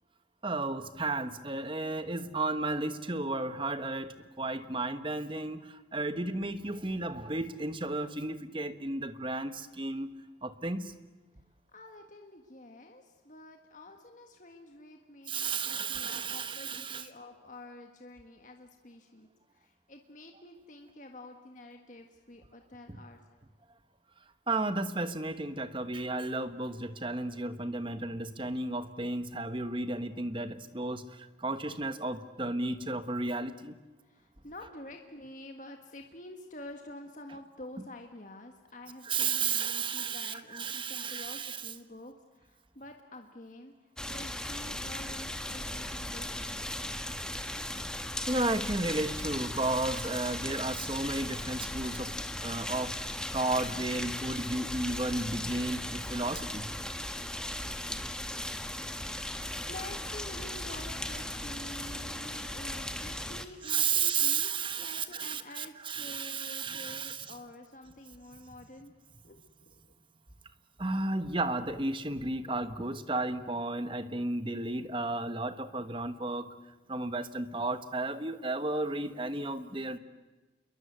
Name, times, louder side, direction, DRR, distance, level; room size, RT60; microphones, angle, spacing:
voice 1, 0.4-10.1 10.4-10.9 15.3-17.1 24.5-33.8 39.1-41.7 48.3-56.7 63.6-67.3 70.8-76.5 76.9-80.0, right 3 dB, 25° right, 11 dB, 1.2 m, -33 dB
voice 2, 11.7-23.2 34.0-43.7 44.1-46.7 59.7-68.9 69.2-69.9, left 1 dB, 40° left, 4 dB, 1.7 m, -48 dB
sound 1, 44.0-63.5, left 1 dB, 5° left, 1.3 m, -37 dB
28.5 x 22.5 x 8.2 m, 1.2 s
head